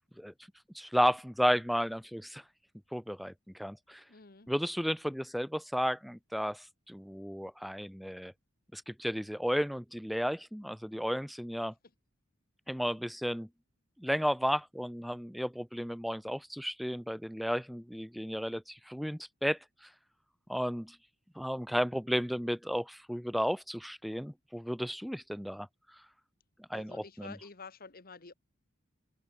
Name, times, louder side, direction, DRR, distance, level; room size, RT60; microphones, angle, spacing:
voice 1, 0.7-2.4 2.9-4.0 4.5-8.3 8.7-11.7 12.7-13.5 14.0-19.9 20.5-21.0 21.4-25.7 26.7-27.3, equal, ahead, 0.9 m, -33 dB
voice 2, 4.1-4.5 26.7-28.3, left 4 dB, 45° left, 1.7 m, -49 dB
open air
head